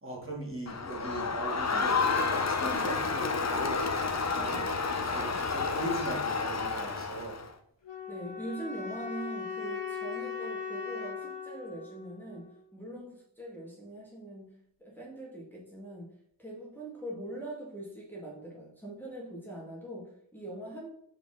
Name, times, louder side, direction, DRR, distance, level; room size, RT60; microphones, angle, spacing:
voice 1, 0.0-4.7 5.0-7.4, right 2 dB, 30° right, -4 dB, 2.5 m, -39 dB
Crowd, 0.7-7.5, left 4 dB, 35° left, 0.8 m, -30 dB
sound 1, 7.8-12.9, left 6 dB, 75° left, 1.5 m, -39 dB
voice 2, 8.1-14.5 14.8-20.9, right 1 dB, 5° left, -6 dB, 1.9 m, -42 dB
6.9 x 5.2 x 3.7 m, 0.70 s
wide cardioid pair, 105°, 44 cm